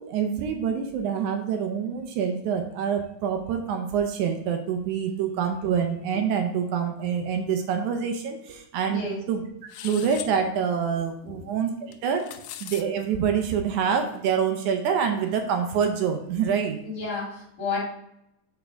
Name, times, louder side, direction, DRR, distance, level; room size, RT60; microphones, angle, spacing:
voice 1, 0.0-9.4 9.8-12.3 12.6-16.8, right 7 dB, 75° right, 5 dB, 2.1 m, -26 dB
voice 2, 8.9-9.2 11.2-11.4 16.8-17.8, left 3 dB, 45° left, -5 dB, 3.6 m, -31 dB
sound 1, 9.7-10.3 11.9-12.8, left 12 dB, 85° left, 1.5 m, -39 dB
6.8 x 6.3 x 3.4 m, 0.79 s
omnidirectional pair, 3.6 m